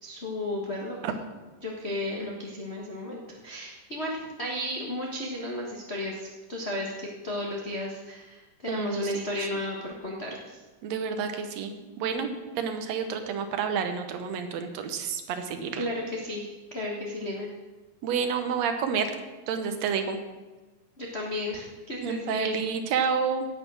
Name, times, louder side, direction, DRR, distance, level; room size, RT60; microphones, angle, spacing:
voice 1, 0.0-1.0 1.6-10.6 15.8-17.5 21.0-22.6, left 1 dB, 70° left, -2 dB, 0.6 m, -34 dB
voice 2, 8.7-9.2 10.8-15.9 18.0-19.1 19.5-20.2 22.0-23.5, right 6 dB, 65° right, 7 dB, 2.0 m, -29 dB
17.0 x 6.0 x 6.3 m, 1.2 s
omnidirectional pair, 3.9 m